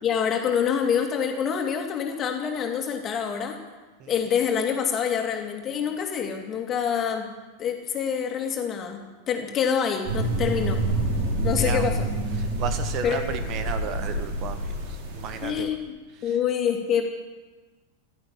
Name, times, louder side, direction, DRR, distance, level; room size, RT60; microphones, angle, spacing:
voice 1, 0.0-3.6 4.1-7.3 7.6-10.8 11.4-12.1 13.0-13.2 15.4-15.8 16.2-17.0, left 7 dB, 30° left, 3 dB, 2.7 m, -26 dB
sound 1, 10.0-15.5, right 1 dB, 50° right, 4.6 m, -27 dB
voice 2, 11.5-11.9 12.4-15.7 16.1-16.4, right 7 dB, 35° right, 8 dB, 1.4 m, -34 dB
15.0 x 12.0 x 7.3 m, 1.3 s
figure-of-eight pair, 90°, 0 cm